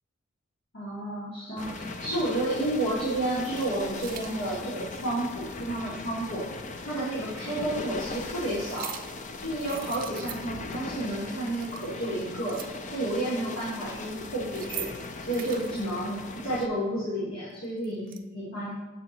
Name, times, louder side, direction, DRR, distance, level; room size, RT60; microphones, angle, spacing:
voice 1, 0.7-6.5 6.8-8.9 9.4-12.6 12.9-14.9 15.3-18.7, right 1 dB, 75° left, -9 dB, 2.0 m, -31 dB
sound 1, 1.6-16.7, left 3 dB, 40° left, 0.4 m, -39 dB
sound 2, 1.7-1.8 2.6-3.0 3.3-4.3 6.2-6.3 7.3-7.4 8.6-9.2 9.6-10.8 11.1-11.2 11.5-12.9 14.3-15.8 17.5-18.2, right 11 dB, 45° right, 0.4 m, -42 dB
6.9 x 3.8 x 4.3 m, 1.2 s
head